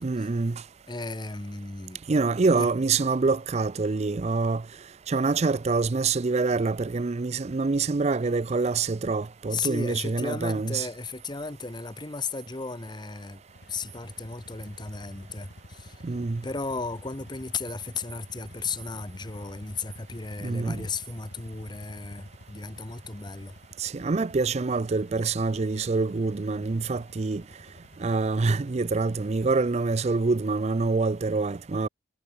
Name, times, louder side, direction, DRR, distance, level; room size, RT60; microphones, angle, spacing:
voice 1, 0.0-0.6 2.1-4.6 5.1-10.9 16.0-16.4 20.4-20.9 23.8-27.4 28.0-31.9, right 3 dB, 35° right, 0.5 m, -26 dB
voice 2, 0.9-2.0 2.5-2.7 9.5-13.4 13.7-16.0 16.4-23.6, left 4 dB, 25° left, 1.0 m, -35 dB
sound 1, 13.4-30.1, left 1 dB, 70° left, 3.2 m, -50 dB
head